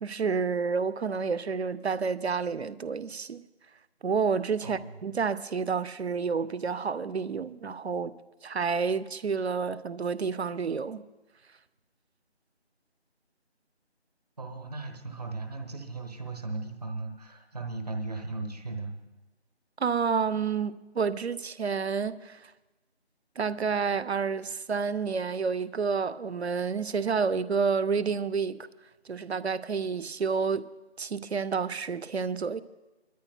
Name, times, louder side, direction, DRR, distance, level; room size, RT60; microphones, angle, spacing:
voice 1, 0.0-3.4 4.0-8.1 8.4-11.0 19.8-22.5 23.4-28.6 29.1-30.7 31.0-32.6, right 5 dB, 70° right, 0.6 m, -29 dB
voice 2, 14.4-18.9, right 3 dB, 35° right, 1.2 m, -37 dB
27.5 x 13.0 x 2.2 m
figure-of-eight pair, 165°, 34 cm